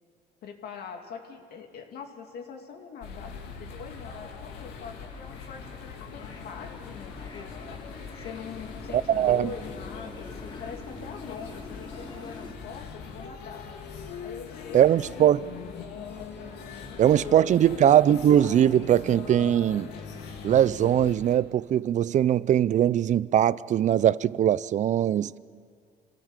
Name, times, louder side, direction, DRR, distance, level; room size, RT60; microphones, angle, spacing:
voice 1, 0.4-7.5 8.1-13.7 14.2-15.4 16.8-17.6, left 6 dB, 65° left, 2.8 m, -43 dB
sound 1, 3.0-21.4, left 5 dB, 85° left, 2.4 m, -41 dB
sound 2, 3.2-12.5, left 3 dB, 25° left, 2.1 m, -47 dB
voice 2, 8.9-9.5 14.7-15.4 17.0-19.9 20.4-25.3, right 10 dB, 45° right, 0.5 m, -21 dB
27.0 x 17.5 x 7.5 m
cardioid pair, 110°, 17 cm